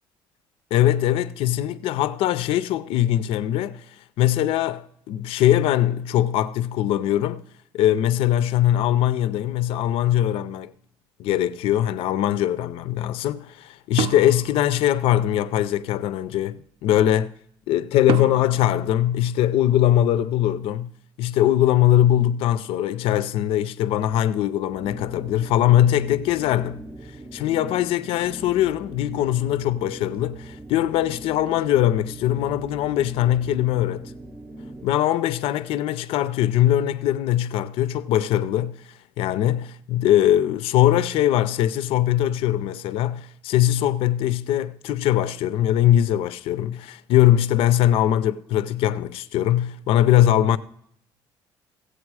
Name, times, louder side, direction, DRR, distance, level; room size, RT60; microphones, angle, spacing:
voice 1, 0.7-3.8 4.2-7.4 7.7-10.7 11.2-17.3 17.7-20.9 21.2-26.8 27.3-34.1 34.8-38.8 39.2-50.6, left 12 dB, 75° left, 0.5 m, -21 dB
sound 1, 14.0-15.5 18.1-19.9, right 10 dB, 65° right, 0.4 m, -31 dB
sound 2, 24.7-35.1, right 1 dB, 15° right, 0.7 m, -41 dB
15.5 x 8.0 x 4.7 m
cardioid pair, 120°, 10 cm